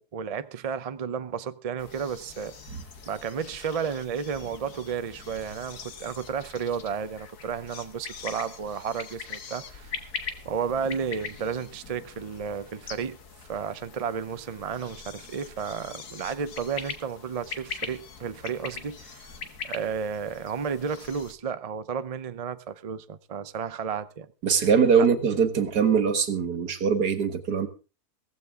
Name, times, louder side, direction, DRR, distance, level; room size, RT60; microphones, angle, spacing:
voice 1, 0.0-2.5 3.0-10.0 10.4-13.2 13.5-19.3 19.6-24.3 25.0-25.1, right 6 dB, 45° right, 0.4 m, -32 dB
sound 1, 1.8-21.3, left 6 dB, 75° left, 2.0 m, -42 dB
voice 2, 24.4-27.7, right 6 dB, 80° right, 2.1 m, -22 dB
16.0 x 15.0 x 3.6 m
omnidirectional pair, 1.7 m